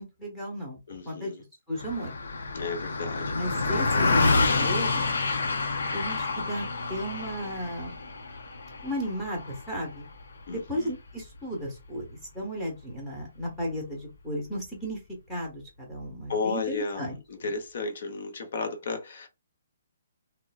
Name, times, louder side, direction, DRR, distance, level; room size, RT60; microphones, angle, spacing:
voice 1, 0.0-0.8 1.1-1.3 1.7-2.2 3.3-5.2 5.9-7.9 8.8-10.0 10.5-15.0 15.3-17.5, equal, 5° left, 0.9 m, -34 dB
voice 2, 0.9-1.4 2.5-3.4 10.5-10.9 16.3-19.3, left 4 dB, 55° left, 0.8 m, -33 dB
Car passing by, 1.8-11.4, left 3 dB, 90° left, 0.7 m, -28 dB
3.7 x 2.1 x 2.3 m
hypercardioid pair, 165°, 0 cm